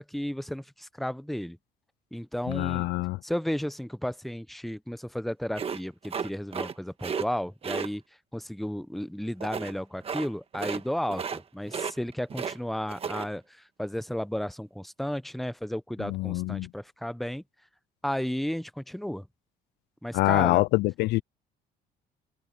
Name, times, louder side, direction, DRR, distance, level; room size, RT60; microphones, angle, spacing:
voice 1, 0.0-1.6 2.1-2.9 3.2-8.0 8.3-17.4 18.0-19.3 20.0-20.6, equal, ahead, 0.7 m, -33 dB
voice 2, 2.5-3.2 16.0-16.7 20.1-21.2, left 20 dB, 80° left, 0.4 m, -25 dB
sound 1, 5.5-6.7 7.0-7.3 7.6-7.9 9.4-9.7 10.0-10.3 10.5-10.8 11.1-11.4 11.7-12.6 12.9-13.3, right 6 dB, 35° right, 1.4 m, -33 dB
cardioid pair, 110°, 17 cm